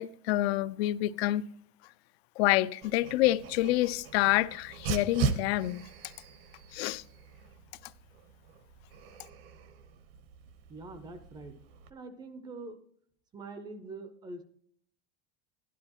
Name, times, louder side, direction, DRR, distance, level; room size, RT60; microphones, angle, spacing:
voice 1, 0.0-1.4 2.4-5.9 6.7-7.0, left 16 dB, 85° left, 0.5 m, -27 dB
Dog, 2.8-11.9, right 6 dB, 70° right, 1.0 m, -39 dB
voice 2, 10.7-11.6 11.9-12.8 13.3-14.4, right 3 dB, 15° right, 0.4 m, -44 dB
11.5 x 11.0 x 2.9 m
supercardioid pair, 170°, 31 cm